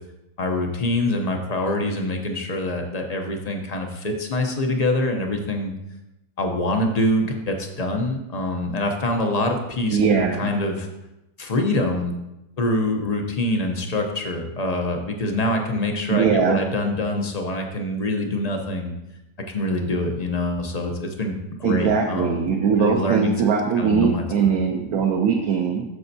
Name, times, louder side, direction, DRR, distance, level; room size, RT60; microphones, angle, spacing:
voice 1, 0.4-5.7 6.4-10.9 11.4-12.1 12.6-18.9 19.5-22.5 22.8-23.3 23.8-24.6, left 1 dB, 45° left, 3 dB, 0.5 m, -25 dB
voice 2, 9.9-10.5 16.1-16.6 21.6-25.8, right 6 dB, 65° right, 1 dB, 1.1 m, -21 dB
9.4 x 6.9 x 2.7 m, 0.94 s
omnidirectional pair, 1.8 m